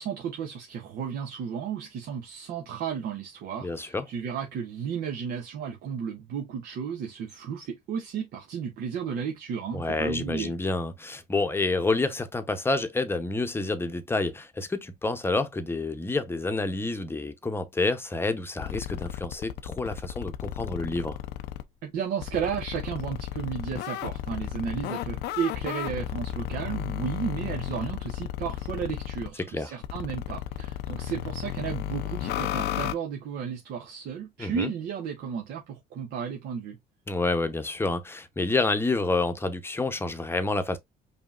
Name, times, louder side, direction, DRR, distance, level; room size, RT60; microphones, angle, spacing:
voice 1, 0.0-10.5 21.8-36.8, right 7 dB, 70° right, 0.9 m, -33 dB
voice 2, 3.6-4.1 9.7-21.2 29.4-29.8 34.4-34.7 37.1-40.8, left 3 dB, 15° left, 0.8 m, -28 dB
sound 1, 18.6-21.6 22.2-29.3 29.8-32.9, left 12 dB, 75° left, 0.5 m, -33 dB
5.2 x 2.8 x 2.4 m
cardioid pair, 110°, 17 cm